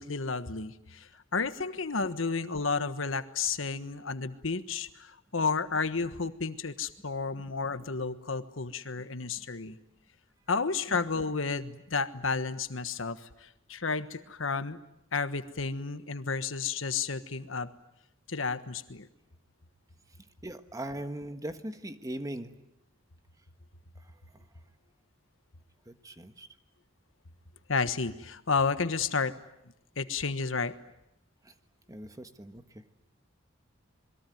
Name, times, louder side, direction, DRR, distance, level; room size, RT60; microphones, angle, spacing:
voice 1, 0.0-9.8 10.5-14.8 15.1-17.7 18.3-19.1 27.7-29.3 30.0-30.7, left 4 dB, 80° left, 11 dB, 1.4 m, -32 dB
voice 2, 20.4-22.5 24.3-24.4 25.9-26.5 31.4-31.5 31.9-32.8, right 1 dB, 20° right, 9 dB, 1.5 m, -40 dB
27.5 x 21.5 x 9.3 m, 0.83 s
head